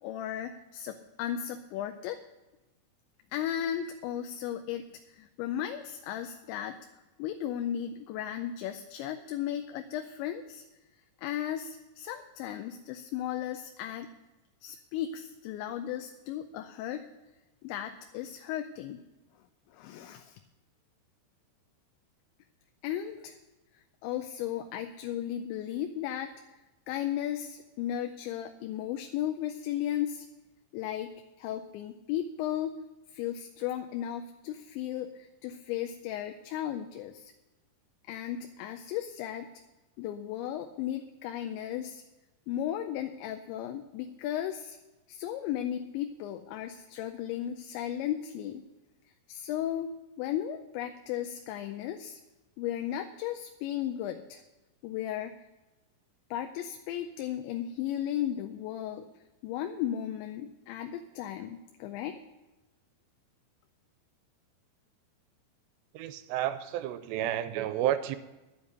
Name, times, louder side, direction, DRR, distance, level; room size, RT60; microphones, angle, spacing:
voice 1, 0.0-2.2 3.3-6.8 7.2-10.6 11.2-14.1 14.6-17.1 17.6-19.0 19.7-20.4 22.8-23.4 24.0-26.3 26.9-30.3 30.7-31.1 31.4-32.7 33.1-37.3 38.1-39.5 40.0-42.0 42.5-44.8 45.1-48.6 49.3-49.9 50.2-52.2 52.6-54.4 54.8-55.4 56.3-59.1 59.4-62.2, left 11 dB, 85° left, 6 dB, 2.9 m, -35 dB
voice 2, 65.9-68.2, right 12 dB, 80° right, 12 dB, 2.7 m, -31 dB
11.5 x 7.5 x 8.1 m, 1.1 s
omnidirectional pair, 5.1 m